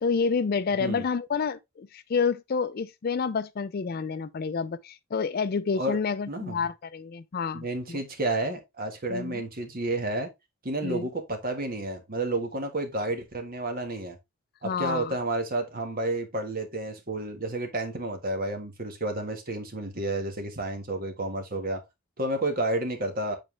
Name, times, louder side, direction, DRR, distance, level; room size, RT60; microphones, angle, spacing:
voice 1, 0.0-8.0 9.1-9.4 10.8-11.1 14.6-15.1, left 5 dB, 45° left, 0.4 m, -29 dB
voice 2, 6.3-6.7 7.5-10.3 10.6-14.2 14.6-21.8 22.2-23.4, right 2 dB, 40° right, 1.5 m, -31 dB
7.4 x 4.3 x 3.2 m
head